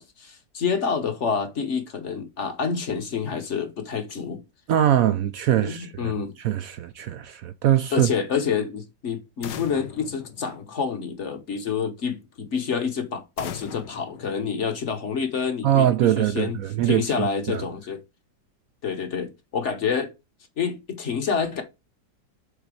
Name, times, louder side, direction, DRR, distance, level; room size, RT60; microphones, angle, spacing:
voice 1, 0.0-4.4 5.6-6.3 7.9-16.6 16.8-18.0 18.8-20.1 20.6-21.6, left 6 dB, 45° left, 1.2 m, -28 dB
voice 2, 4.7-6.1 6.4-8.1 15.6-17.6, right 11 dB, 70° right, 0.8 m, -22 dB
sound 1, 9.4-11.2 13.4-15.1, left 9 dB, 70° left, 1.3 m, -40 dB
6.9 x 4.1 x 4.8 m
omnidirectional pair, 2.0 m